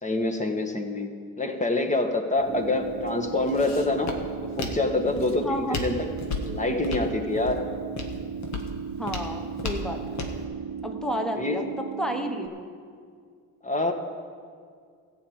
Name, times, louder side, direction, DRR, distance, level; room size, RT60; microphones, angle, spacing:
voice 1, 0.0-1.1 1.4-4.1 4.6-6.1 6.4-7.6 11.4-11.6 13.6-13.9, left 2 dB, 20° left, 5 dB, 1.5 m, -26 dB
Walk footsteps, 2.4-10.4, left 3 dB, 55° left, 1.6 m, -36 dB
sound 1, 2.5-12.5, right 7 dB, 50° right, 1.0 m, -36 dB
voice 2, 5.4-5.8 9.0-10.2 10.8-11.6 12.0-12.7, equal, ahead, 4 dB, 1.2 m, -31 dB
14.0 x 5.1 x 8.8 m, 2.1 s
supercardioid pair, 70°, 33 cm